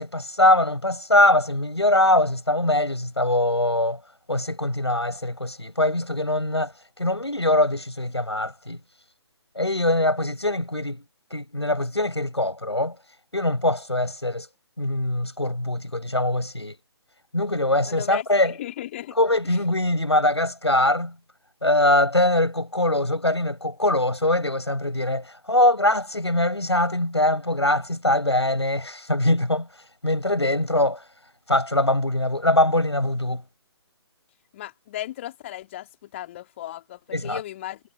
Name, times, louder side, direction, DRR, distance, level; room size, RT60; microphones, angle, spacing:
voice 1, 0.0-4.0 4.3-6.7 7.0-8.8 9.5-11.0 11.3-13.0 13.3-14.5 14.8-16.8 17.3-18.5 19.1-21.1 21.6-29.7 30.0-31.0 31.5-33.4 37.1-37.4, left 1 dB, 80° left, 6.6 m, -22 dB
voice 2, 17.9-19.2 34.5-37.8, left 13 dB, 30° left, 3.2 m, -36 dB
figure-of-eight pair, 140°, 14 cm